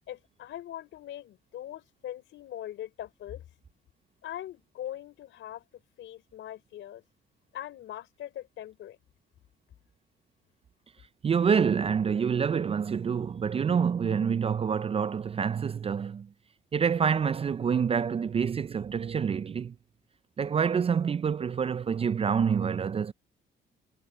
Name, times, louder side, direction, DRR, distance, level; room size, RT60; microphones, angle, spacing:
voice 1, 0.1-3.4 4.2-7.0 7.5-9.0, left 12 dB, 75° left, 3.8 m, -41 dB
voice 2, 11.2-16.3 16.7-19.7 20.4-23.1, right 6 dB, 30° right, 0.3 m, -27 dB
cardioid pair, 90°, 20 cm